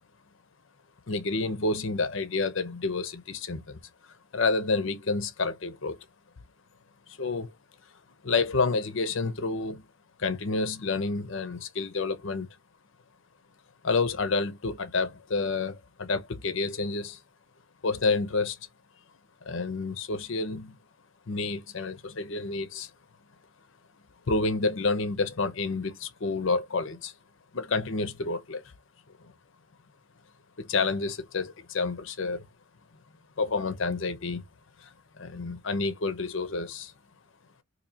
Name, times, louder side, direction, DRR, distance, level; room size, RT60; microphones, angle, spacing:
voice 1, 1.1-3.8 4.3-6.0 7.1-7.5 8.2-9.8 10.2-12.5 13.8-17.2 17.8-18.6 19.4-20.8 21.3-22.9 24.3-27.1 27.5-28.6 29.2-29.3 30.6-32.4 33.4-34.4 34.8-36.9, left 3 dB, 65° left, 0.7 m, -29 dB
4.2 x 2.7 x 2.7 m
head